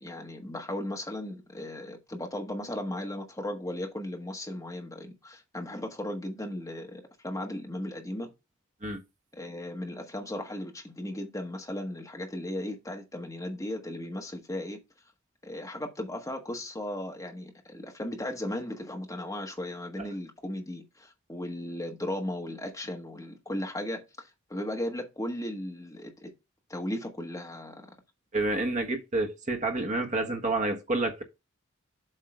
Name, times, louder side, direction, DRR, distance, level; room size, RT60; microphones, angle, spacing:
voice 1, 0.0-8.3 9.3-14.8 15.4-26.3 26.7-27.8, left 1 dB, 15° left, 1.3 m, -36 dB
voice 2, 28.3-31.2, right 2 dB, 35° right, 1.3 m, -29 dB
7.6 x 3.7 x 4.8 m
head